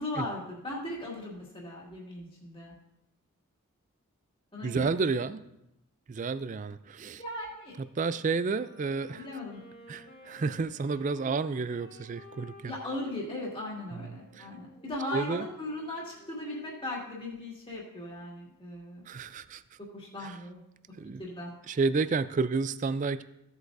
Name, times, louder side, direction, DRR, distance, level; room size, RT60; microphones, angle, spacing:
voice 1, 0.0-2.7 4.5-4.9 7.2-7.8 9.1-9.6 12.7-19.0 19.9-20.6 21.2-21.5, left 1 dB, 25° left, -4 dB, 2.1 m, -38 dB
voice 2, 4.6-5.4 6.1-7.2 8.0-9.3 9.9-12.7 13.9-14.5 15.1-15.5 19.1-19.6 20.2-20.4 21.0-21.2 21.7-23.2, right 4 dB, 35° right, 14 dB, 0.3 m, -31 dB
Wind instrument woodwind instrument, 8.4-17.1, left 1 dB, 75° left, 2.9 m, -54 dB
16.0 x 8.0 x 2.6 m, 0.84 s
head